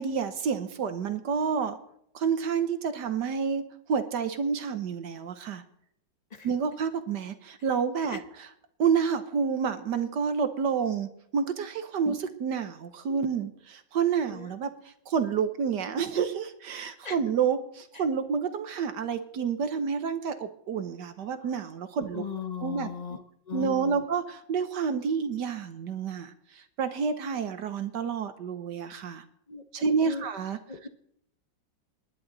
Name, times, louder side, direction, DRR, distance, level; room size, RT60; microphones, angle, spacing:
voice 1, 0.0-1.8 2.1-3.6 3.9-5.6 6.4-8.5 8.8-14.7 15.1-22.3 22.6-22.9 23.5-29.2 29.7-30.6, right 6 dB, 65° right, 10 dB, 1.5 m, -29 dB
voice 2, 22.1-23.2 23.5-24.0 29.5-30.2 30.7-30.9, left 6 dB, 35° left, 8 dB, 0.7 m, -37 dB
27.0 x 11.0 x 4.0 m, 0.71 s
omnidirectional pair, 2.2 m